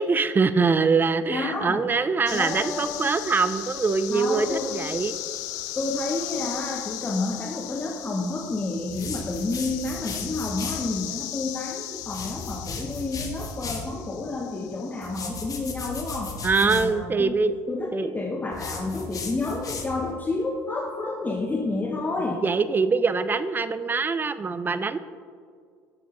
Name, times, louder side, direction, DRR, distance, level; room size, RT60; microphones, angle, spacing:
voice 1, 0.0-5.2 16.4-17.6 17.9-18.1 22.4-25.0, right 4 dB, 20° right, 13 dB, 0.4 m, -23 dB
voice 2, 1.3-1.9 2.3-3.2 4.1-4.9 5.8-17.3 17.7-22.4, left 3 dB, 20° left, 1 dB, 0.7 m, -30 dB
sound 1, 2.3-16.3, left 14 dB, 80° left, 0.4 m, -37 dB
sound 2, 8.9-10.9 12.0-13.9 15.0-16.9 18.5-20.1, left 3 dB, 40° left, 1.1 m, -36 dB
7.6 x 7.2 x 3.0 m, 2.1 s
hypercardioid pair, 70°, 9 cm